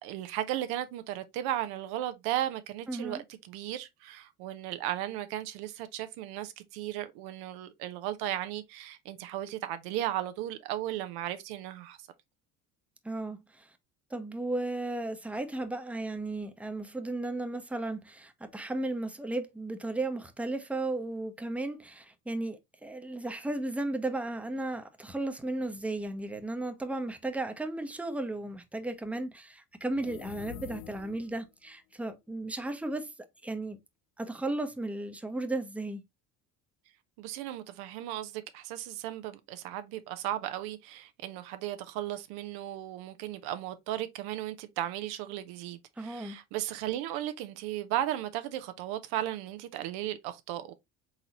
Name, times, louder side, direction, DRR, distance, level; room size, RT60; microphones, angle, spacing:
voice 1, 0.0-12.0 37.2-50.7, right 13 dB, 65° right, 0.7 m, -35 dB
voice 2, 2.9-3.2 13.0-13.7 14.1-33.1 33.4-33.8 34.2-36.0 46.0-46.4, right 2 dB, 5° right, 0.8 m, -35 dB
sound 1, 29.9-31.4, left 15 dB, 65° left, 0.5 m, -45 dB
4.1 x 3.8 x 2.9 m
hypercardioid pair, 65°, 41 cm